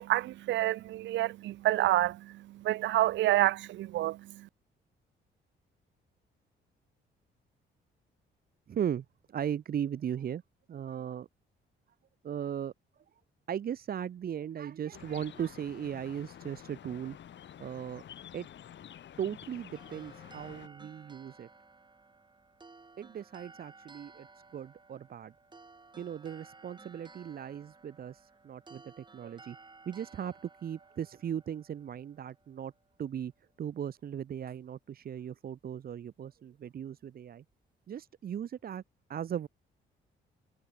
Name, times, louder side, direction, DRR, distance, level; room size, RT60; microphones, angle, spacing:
voice 1, 0.0-2.2 2.6-4.2, right 15 dB, 70° right, 0.4 m, -28 dB
voice 2, 8.7-10.4 10.7-11.3 12.2-12.7 13.5-17.2 17.6-18.0 18.3-18.5 19.2-21.5 23.0-24.3 24.5-25.3 26.0-29.6 29.9-32.7 33.0-33.3 33.6-37.4 37.9-38.8 39.1-39.5, right 9 dB, 50° right, 0.8 m, -37 dB
sound 1, 14.9-20.7, left 10 dB, 65° left, 7.5 m, -50 dB
sound 2, 19.7-32.9, right 3 dB, 25° right, 2.3 m, -56 dB
cardioid pair, 90°, 20 cm